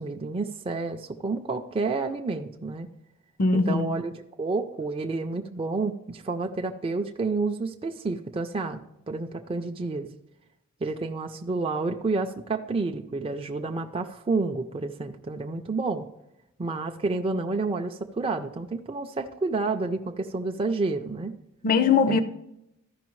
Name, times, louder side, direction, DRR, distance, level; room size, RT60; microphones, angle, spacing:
voice 1, 0.0-2.9 3.5-10.1 10.8-16.1 16.6-21.3 22.1-22.2, right 3 dB, 25° right, 0.4 m, -30 dB
voice 2, 3.4-3.9 21.6-22.2, left 5 dB, 40° left, 0.4 m, -21 dB
14.0 x 5.6 x 3.1 m
head